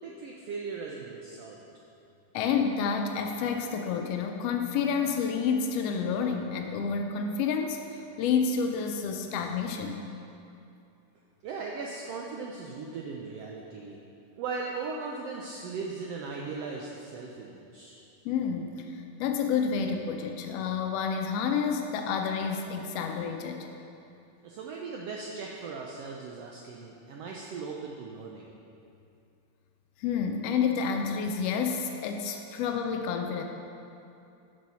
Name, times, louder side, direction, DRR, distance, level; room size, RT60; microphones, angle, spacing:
voice 1, 0.0-1.6 11.4-14.0 14.4-18.0 24.4-28.5, right 4 dB, 75° right, -1 dB, 1.5 m, -38 dB
voice 2, 2.3-10.0 18.2-23.7 30.0-33.4, left 6 dB, 85° left, 4 dB, 1.4 m, -29 dB
8.4 x 6.1 x 5.6 m, 2.7 s
omnidirectional pair, 3.4 m